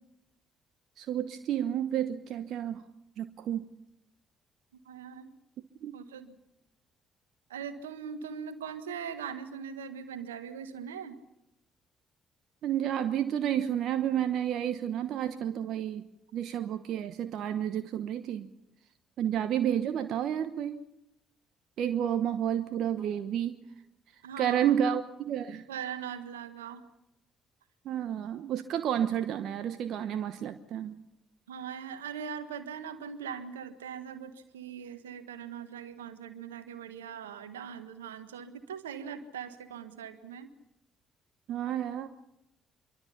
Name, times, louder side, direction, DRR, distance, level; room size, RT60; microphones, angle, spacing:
voice 1, 1.0-2.8 3.2-3.7 5.8-6.0 12.6-16.0 16.3-18.5 19.2-20.8 21.8-23.6 24.4-25.6 27.8-31.0 41.5-42.1, right 10 dB, 60° right, 10 dB, 1.1 m, -30 dB
voice 2, 4.8-5.3 5.9-6.4 7.5-11.2 24.2-24.7 25.7-26.9 31.5-40.5, right 7 dB, 80° right, 10 dB, 1.6 m, -41 dB
26.0 x 23.5 x 5.8 m, 0.84 s
figure-of-eight pair, 45°, 0 cm